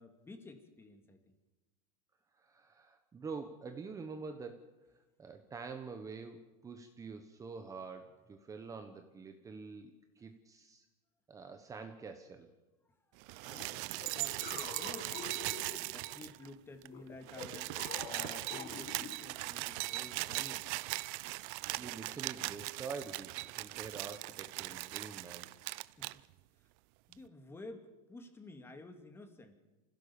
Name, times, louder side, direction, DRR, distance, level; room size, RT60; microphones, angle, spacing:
voice 1, 0.0-1.3 13.4-15.3 15.9-20.7 26.0-26.2 26.6-26.7 27.1-29.5, left 2 dB, 10° left, 7 dB, 2.4 m, -52 dB
voice 2, 2.3-10.8 11.3-12.5 21.8-25.5, right 5 dB, 15° right, 6 dB, 1.3 m, -46 dB
sound 1, 13.2-16.5 16.8-16.9 17.1-26.2 27.1-27.2, right 22 dB, 60° right, 0.6 m, -40 dB
sound 2, 13.5-16.3 16.9-19.6, left 7 dB, 40° left, 2.1 m, -48 dB
25.5 x 16.0 x 7.1 m, 1.1 s
supercardioid pair, 145°, 19 cm